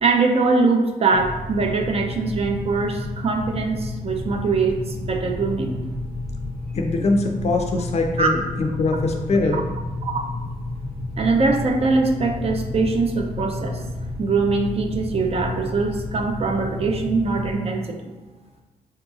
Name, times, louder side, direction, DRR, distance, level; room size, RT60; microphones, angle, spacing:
voice 1, 0.0-5.9 8.2-8.3 9.5-9.6 10.0-10.2 11.2-13.8 14.2-18.1, right 4 dB, 45° right, 3 dB, 0.4 m, -22 dB
sound 1, 1.1-17.5, left 2 dB, 80° right, 0.7 m, -31 dB
voice 2, 6.7-9.7, left 2 dB, 45° left, 3 dB, 0.5 m, -22 dB
3.9 x 2.7 x 2.4 m, 1.2 s
cardioid pair, 80°, 15 cm